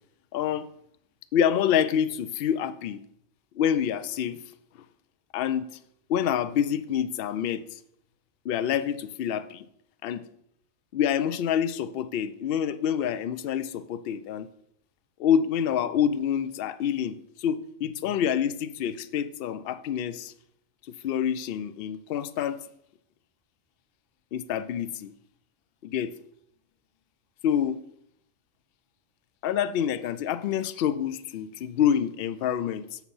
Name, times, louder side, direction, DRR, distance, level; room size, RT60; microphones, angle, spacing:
voice 1, 0.3-0.7 1.3-3.0 3.5-4.4 5.3-5.7 6.1-7.8 8.4-9.7 10.0-10.2 10.9-14.5 15.2-20.3 21.0-22.6 24.3-25.1 25.8-26.1 27.4-27.8 29.4-33.0, left 9 dB, 65° left, 14 dB, 0.6 m, -27 dB
7.1 x 5.9 x 5.5 m, 0.73 s
omnidirectional pair, 1.3 m